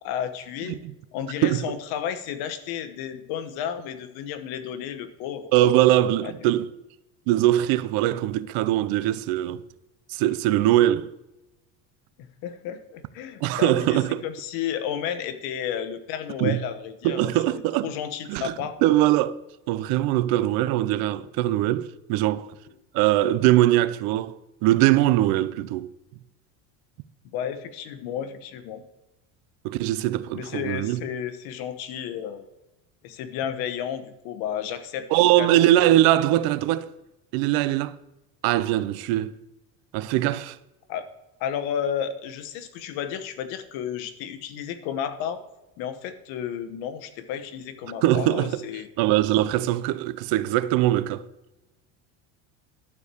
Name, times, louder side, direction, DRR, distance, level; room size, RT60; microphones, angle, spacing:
voice 1, 0.0-0.8 1.1-5.5 6.2-6.3 12.2-18.8 27.3-28.8 30.3-32.4 33.0-35.7 40.9-41.0 41.4-45.4 45.8-48.9, left 9 dB, 70° left, 1.2 m, -32 dB
voice 2, 5.5-6.7 7.3-9.6 10.1-11.1 13.4-14.2 16.4-16.6 17.0-17.9 18.3-18.5 18.8-19.4 19.7-22.5 22.9-25.9 29.6-31.0 35.1-36.9 37.3-37.9 38.4-39.3 39.9-40.6 48.0-48.6 49.0-51.2, right 14 dB, 65° right, 0.6 m, -21 dB
12.0 x 4.6 x 6.8 m
supercardioid pair, 125°, 38 cm